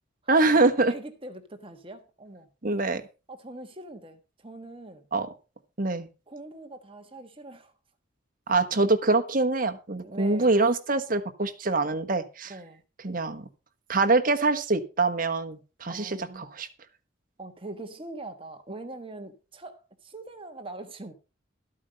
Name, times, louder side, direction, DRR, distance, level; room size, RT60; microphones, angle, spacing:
voice 1, 0.3-0.9 2.6-3.0 5.1-5.3 5.8-6.1 8.5-12.5 13.0-13.5 13.9-16.7, right 3 dB, 45° right, 1.3 m, -24 dB
voice 2, 0.9-2.5 3.3-5.0 6.3-7.7 10.0-10.5 12.5-12.8 15.9-16.5 17.4-21.1, right 2 dB, 30° right, 1.4 m, -42 dB
13.5 x 8.5 x 5.2 m
head